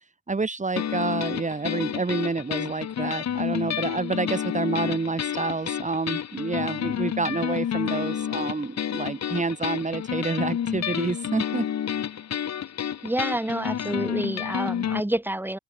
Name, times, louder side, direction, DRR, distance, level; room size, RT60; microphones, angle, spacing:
voice 1, 0.3-11.7, right 3 dB, 25° right, 3.9 m, -28 dB
sound 1, 0.8-15.0, left 9 dB, 60° left, 5.9 m, -30 dB
voice 2, 13.0-15.6, right 1 dB, 5° right, 4.9 m, -28 dB
open air
cardioid pair, 90°, 30 cm